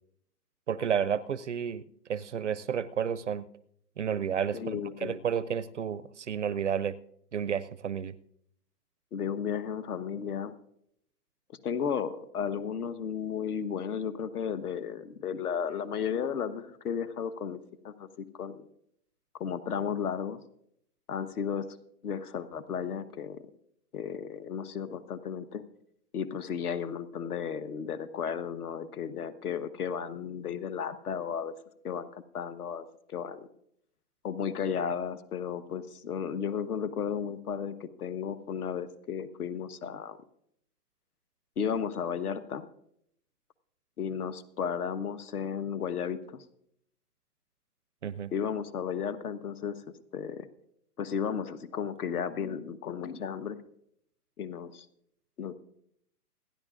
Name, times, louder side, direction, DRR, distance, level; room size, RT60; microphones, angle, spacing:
voice 1, 0.7-1.8 2.1-3.5 4.0-7.0 7.3-8.2 48.0-48.3, right 8 dB, 50° right, 17 dB, 0.4 m, -31 dB
voice 2, 4.5-5.2 9.1-10.5 11.6-17.6 17.8-18.7 19.4-20.4 21.1-21.7 22.0-23.4 23.9-25.6 26.1-31.5 31.8-32.1 32.3-33.5 34.2-40.2 41.6-42.6 44.0-46.4 48.3-49.8 50.1-50.5 51.0-53.6 54.4-54.9 55.4-55.5, left 7 dB, 65° left, 13 dB, 1.2 m, -34 dB
28.5 x 10.5 x 2.5 m, 0.72 s
hypercardioid pair, 165°, 48 cm